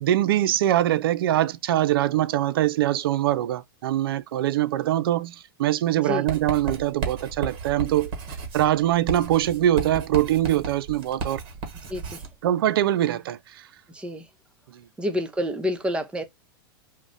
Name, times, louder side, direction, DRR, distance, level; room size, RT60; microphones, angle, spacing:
voice 1, 0.0-8.1 8.5-11.4 12.4-13.7 14.7-14.8, right 13 dB, 75° right, 0.4 m, -23 dB
Writing, 6.3-12.3, right 5 dB, 45° right, 1.1 m, -33 dB
voice 2, 11.9-12.2 13.9-14.2 15.0-16.2, left 1 dB, 10° right, 0.6 m, -28 dB
2.4 x 2.1 x 3.9 m
hypercardioid pair, 115°, 12 cm